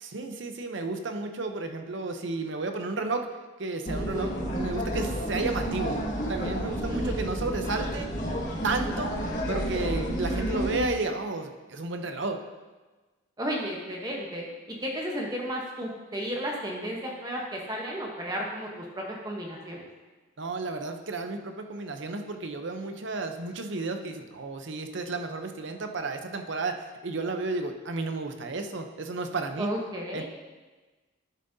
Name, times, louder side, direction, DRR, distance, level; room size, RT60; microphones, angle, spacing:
voice 1, 0.0-3.3 3.6-6.0 6.3-8.1 8.5-9.1 9.5-12.4 20.4-26.8 27.0-29.7 30.1-30.2, right 3 dB, 65° right, 6 dB, 0.7 m, -32 dB
sound 1, 3.8-10.9, equal, 35° left, 1.7 m, -30 dB
voice 2, 6.9-7.2 13.4-19.9 29.6-30.2, equal, 20° right, -1 dB, 0.9 m, -33 dB
12.0 x 7.4 x 2.7 m, 1.2 s
head